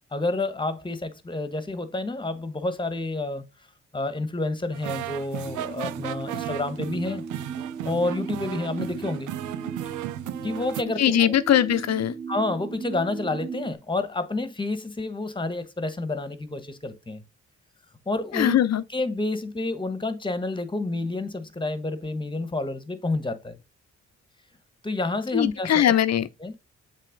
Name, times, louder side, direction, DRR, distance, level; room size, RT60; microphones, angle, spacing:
voice 1, 0.1-3.4 3.9-7.2 7.8-9.3 10.4-11.3 12.3-17.2 18.1-18.6 18.9-23.6 24.8-25.9 26.4-26.6, left 2 dB, 15° left, 1.3 m, -29 dB
sound 1, 4.7-10.8, right 14 dB, 90° right, 0.5 m, -35 dB
sound 2, 5.4-13.7, right 5 dB, 40° right, 2.6 m, -37 dB
voice 2, 11.0-12.2 18.3-18.8 25.3-26.3, left 10 dB, 60° left, 0.7 m, -21 dB
7.6 x 3.1 x 5.1 m
cardioid pair, 65°, 30 cm